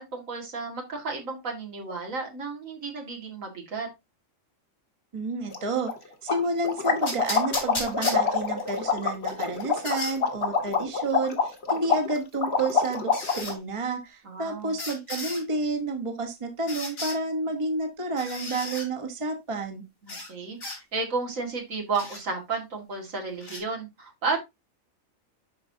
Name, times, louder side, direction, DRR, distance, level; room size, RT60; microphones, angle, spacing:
voice 1, 0.0-3.9 14.2-14.7 20.0-24.4, right 4 dB, 80° right, 1 dB, 2.3 m, -32 dB
voice 2, 5.1-19.8, right 2 dB, 25° right, 5 dB, 1.1 m, -30 dB
sound 1, 5.5-5.6 5.9-6.0 6.3-13.5, left 6 dB, 55° left, 1.5 m, -26 dB
sound 2, 7.1-8.8 9.3-10.2 11.7-11.8 13.1-13.5 14.8-15.4 16.7-17.2 18.2-18.9 20.1-20.3 20.6-20.8 21.9-22.2 23.4-23.6, left 2 dB, 90° left, 3.2 m, -34 dB
11.5 x 4.7 x 2.7 m, 0.21 s
omnidirectional pair, 1.4 m